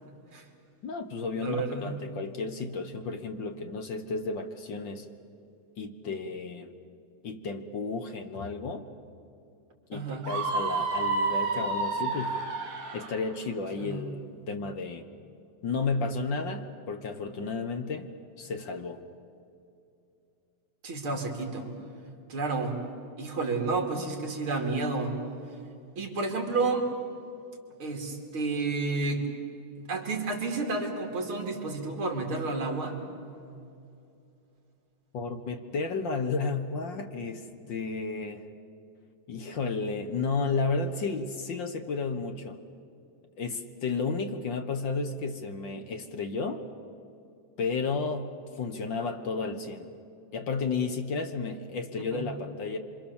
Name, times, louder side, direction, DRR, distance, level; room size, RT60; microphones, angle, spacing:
voice 1, 0.8-5.0 5.8-6.7 7.2-8.9 9.9-12.3 12.9-15.1 15.6-18.1 18.4-19.0 35.1-38.4 39.3-42.6 43.4-46.6 47.6-49.9 50.3-52.8, left 4 dB, 55° left, 7 dB, 1.4 m, -32 dB
voice 2, 1.4-2.3 9.9-10.3 13.8-14.1 20.8-21.7 22.3-22.8 23.2-25.2 26.0-26.9 27.8-29.2 29.9-33.0 52.1-52.3, right 3 dB, 45° right, 2 dB, 3.5 m, -31 dB
Screaming, 10.2-13.2, right 3 dB, 65° right, 4.4 m, -29 dB
27.0 x 26.0 x 7.2 m, 2.6 s
omnidirectional pair, 3.4 m